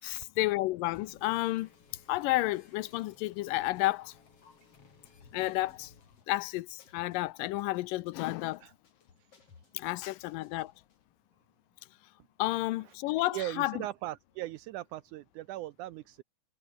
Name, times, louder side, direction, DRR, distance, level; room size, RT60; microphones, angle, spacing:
voice 1, 0.0-1.7 2.1-4.1 5.3-5.9 6.3-8.6 9.7-10.7 12.4-13.7, left 18 dB, 85° left, 2.3 m, -31 dB
sound 1, 0.9-11.0, left 5 dB, 45° left, 4.3 m, -59 dB
voice 2, 13.3-16.2, right 15 dB, 80° right, 1.9 m, -39 dB
omnidirectional pair, 4.0 m